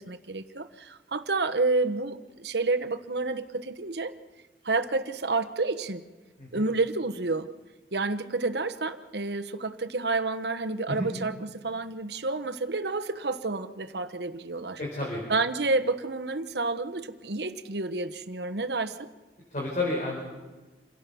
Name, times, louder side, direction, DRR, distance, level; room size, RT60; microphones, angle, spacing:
voice 1, 0.0-4.1 4.6-6.0 6.5-7.5 7.9-14.8 15.3-19.1, right 3 dB, 70° right, 10 dB, 1.2 m, -29 dB
voice 2, 14.8-15.2 19.5-20.2, left 2 dB, 45° left, -2 dB, 4.7 m, -30 dB
27.5 x 17.0 x 7.0 m, 1.3 s
head